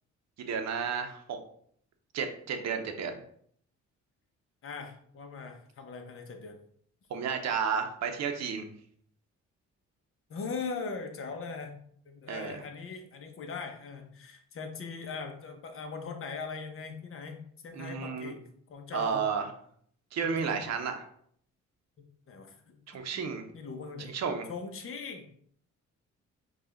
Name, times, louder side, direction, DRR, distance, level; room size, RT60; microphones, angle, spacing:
voice 1, 0.4-1.4 2.1-3.2 7.1-8.7 12.3-12.6 17.7-18.3 18.9-19.4 20.1-21.0 22.9-23.4 24.0-24.4, right 6 dB, 60° right, 5 dB, 0.8 m, -32 dB
voice 2, 4.6-6.6 10.3-11.8 12.1-19.2 20.2-20.6 22.0-22.8 23.5-24.1 24.5-25.4, left 4 dB, 45° left, 4 dB, 0.9 m, -40 dB
4.9 x 2.4 x 3.7 m, 0.63 s
cardioid pair, 90°, 30 cm